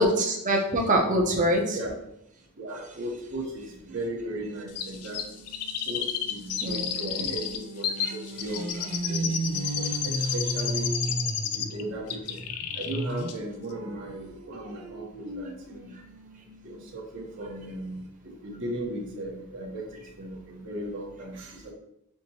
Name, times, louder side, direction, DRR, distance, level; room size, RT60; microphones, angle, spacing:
voice 1, 0.0-1.8 6.6-7.4 8.0-8.1 9.8-10.0, equal, 35° right, 0 dB, 0.8 m, -25 dB
voice 2, 2.6-5.4 5.9-6.0 6.3-10.9 11.5-12.5 12.8-15.9 16.6-21.7, right 1 dB, 55° right, -1 dB, 1.0 m, -37 dB
sound 1, 3.9-13.5 13.9-17.0 17.5-17.6 17.8-17.9, right 2 dB, 85° right, 0.6 m, -36 dB
Chirp tweet, 4.8-11.8 12.1-13.0 13.3-13.4, left 8 dB, 85° left, 0.4 m, -32 dB
5.8 x 2.9 x 2.9 m, 0.79 s
head